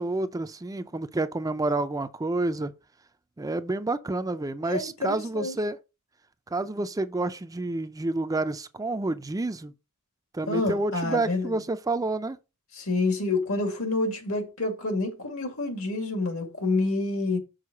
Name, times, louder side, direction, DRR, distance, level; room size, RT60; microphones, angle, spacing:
voice 1, 0.0-2.7 3.4-5.8 6.5-9.7 10.3-12.4, right 2 dB, 15° right, 0.4 m, -29 dB
voice 2, 4.6-5.5 10.5-11.6 12.8-17.4, left 2 dB, 70° left, 2.2 m, -28 dB
6.5 x 4.6 x 5.7 m
head